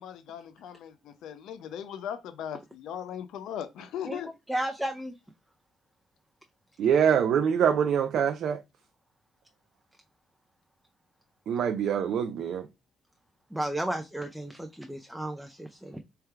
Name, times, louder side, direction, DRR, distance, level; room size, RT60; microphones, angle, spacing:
voice 1, 0.0-4.3, left 9 dB, 80° left, 0.5 m, -38 dB
voice 2, 4.5-5.2 13.5-16.0, right 1 dB, 5° right, 0.4 m, -33 dB
voice 3, 6.8-8.6 11.5-12.7, right 8 dB, 70° right, 0.4 m, -24 dB
3.4 x 2.3 x 4.4 m
cardioid pair, 90°, 0 cm